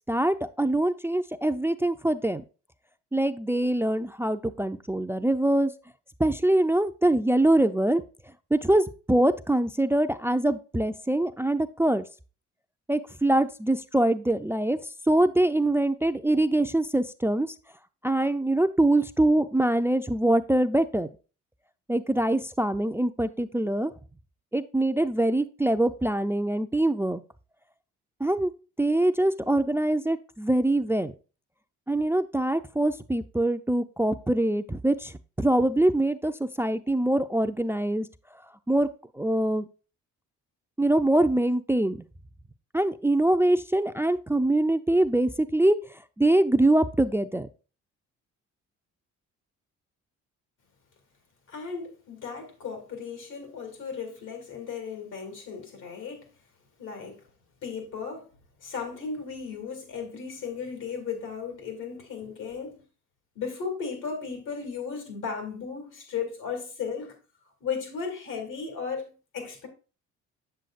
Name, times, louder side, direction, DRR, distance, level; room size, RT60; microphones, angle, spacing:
voice 1, 0.1-2.4 3.1-5.7 6.2-8.0 8.5-12.0 12.9-14.8 15.1-17.5 18.0-21.1 21.9-23.9 24.5-27.2 28.2-28.5 28.8-31.1 31.9-38.1 38.7-38.9 39.1-39.7 40.8-42.0 42.7-45.8 46.2-47.5, right 1 dB, 10° right, 0.3 m, -24 dB
voice 2, 51.5-56.3 56.8-57.2 57.6-58.3 58.6-62.8 63.3-67.1 67.6-69.7, left 6 dB, 90° left, 2.6 m, -35 dB
7.7 x 7.5 x 2.4 m
cardioid pair, 90°, 30 cm